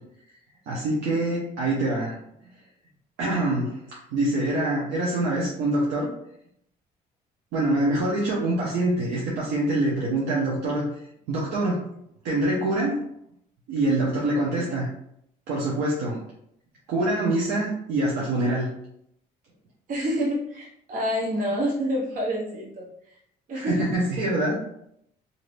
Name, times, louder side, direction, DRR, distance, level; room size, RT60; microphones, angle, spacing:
voice 1, 0.7-2.2 3.2-3.8 4.1-6.1 7.5-10.9 11.3-11.8 12.2-13.0 13.7-14.9 15.5-16.2 16.9-18.7 23.5-24.6, right 2 dB, 80° right, -4 dB, 0.8 m, -25 dB
voice 2, 19.9-22.9 23.5-23.8, equal, 50° right, -3 dB, 0.8 m, -27 dB
3.2 x 2.7 x 2.5 m, 0.73 s
cardioid pair, 110°, 17 cm